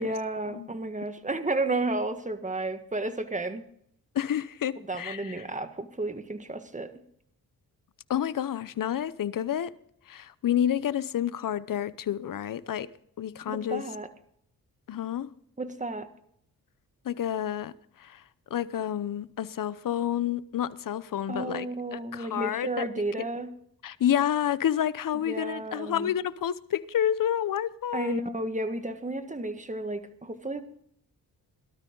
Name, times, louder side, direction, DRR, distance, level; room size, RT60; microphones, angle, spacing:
voice 1, 0.0-3.6 4.9-6.9 13.5-14.1 15.6-16.1 21.3-23.5 25.2-26.1 27.9-30.6, right 2 dB, 20° right, 1.7 m, -32 dB
voice 2, 4.1-5.3 8.1-9.7 10.1-12.9 13.2-13.8 14.9-15.3 17.0-17.7 18.0-18.2 18.5-21.7 21.9-22.9 23.8-28.2, left 10 dB, 60° left, 0.8 m, -29 dB
17.5 x 12.5 x 3.9 m
cardioid pair, 65°, 37 cm